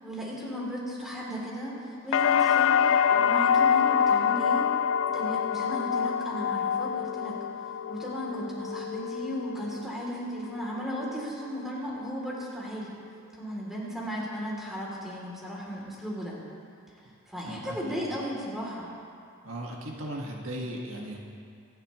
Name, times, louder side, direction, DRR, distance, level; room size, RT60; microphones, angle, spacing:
voice 1, 0.0-4.7 5.1-7.4 7.9-13.0 13.3-16.4 17.3-18.9, equal, ahead, -5 dB, 3.2 m, -35 dB
sound 1, 2.1-10.0 10.4-11.1, left 7 dB, 65° left, 0.3 m, -26 dB
voice 2, 17.4-18.0 19.4-21.2, right 1 dB, 80° right, -1 dB, 1.8 m, -37 dB
25.0 x 11.5 x 3.2 m, 2.3 s
head